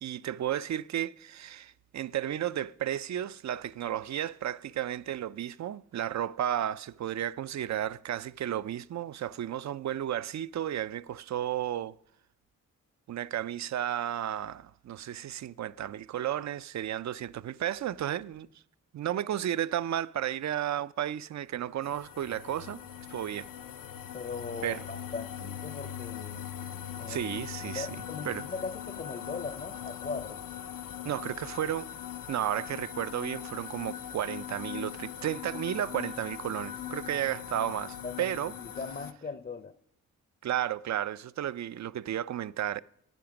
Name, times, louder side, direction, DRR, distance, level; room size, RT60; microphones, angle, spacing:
voice 1, 0.0-12.0 13.1-18.5 18.9-22.8 23.1-23.5 24.6-24.8 27.1-27.9 28.3-28.4 31.0-31.9 32.3-38.5 40.4-42.8, right 11 dB, 60° right, 0.4 m, -33 dB
sound 1, 21.8-39.1, left 10 dB, 75° left, 0.7 m, -41 dB
voice 2, 24.1-26.5 27.0-27.2 27.6-30.4 38.0-39.7, left 4 dB, 30° left, 0.6 m, -39 dB
12.5 x 8.7 x 5.9 m
cardioid pair, 60°, 32 cm